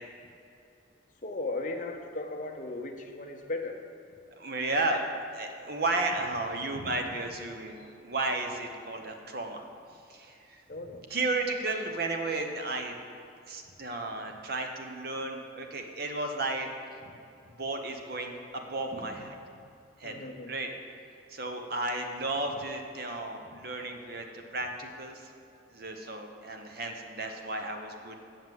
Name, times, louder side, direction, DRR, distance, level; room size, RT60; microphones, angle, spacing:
voice 1, 1.2-3.8 10.7-11.0 18.9-19.1 20.0-20.5, left 2 dB, 40° left, 3 dB, 0.8 m, -36 dB
voice 2, 4.4-5.0 5.3-9.6 9.9-10.6 11.1-13.0 13.4-16.7 17.6-19.4 20.0-20.2 20.5-20.7 21.3-25.3 25.7-28.2, right 2 dB, 50° right, 4 dB, 0.9 m, -33 dB
7.6 x 6.6 x 7.6 m, 2.6 s
head